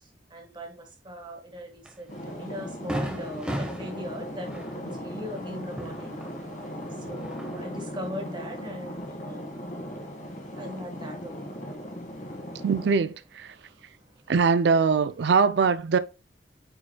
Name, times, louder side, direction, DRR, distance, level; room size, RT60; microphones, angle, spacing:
voice 1, 0.3-1.7 2.0-6.2 7.1-8.9 9.3-9.4 10.6-11.3, left 1 dB, 25° right, 1.4 m, -39 dB
Fireworks, 1.8-2.0 2.4-2.5 2.9-6.7 7.0-7.8, equal, 5° right, 1.2 m, -36 dB
sound 1, 2.1-13.0, equal, 45° left, 1.7 m, -38 dB
voice 2, 12.6-13.5 14.3-16.0, right 5 dB, 65° right, 0.4 m, -22 dB
9.0 x 4.9 x 2.2 m
head